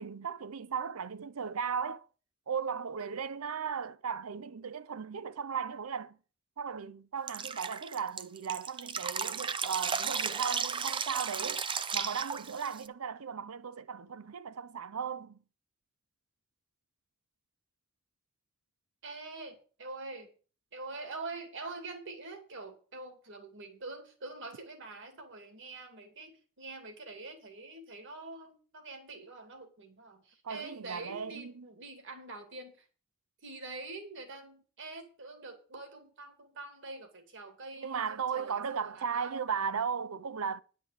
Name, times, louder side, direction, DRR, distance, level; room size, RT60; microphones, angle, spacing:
voice 1, 0.0-2.1 2.5-6.2 6.6-11.6 11.9-15.4 30.4-31.7 37.8-40.6, right 6 dB, 75° right, 0.6 m, -36 dB
Drip, 7.3-12.9, right 6 dB, 25° right, 0.5 m, -34 dB
voice 2, 19.0-20.3 20.7-32.9 33.4-39.3, right 3 dB, 60° right, 2.5 m, -45 dB
10.0 x 5.3 x 8.0 m
head